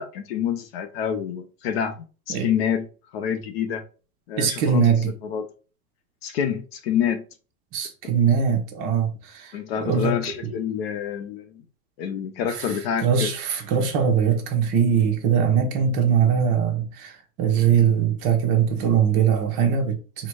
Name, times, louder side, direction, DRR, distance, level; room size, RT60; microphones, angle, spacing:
voice 1, 0.0-2.9 3.1-3.8 4.3-4.8 5.2-5.5 6.2-7.2 8.0-8.2 9.5-11.6 12.0-13.3, left 8 dB, 45° left, 0.6 m, -27 dB
voice 2, 4.4-5.1 7.7-9.5 9.8-10.2 12.5-12.6 13.0-20.3, right 7 dB, 35° right, 1.0 m, -21 dB
4.3 x 2.3 x 4.7 m
supercardioid pair, 150°, 45 cm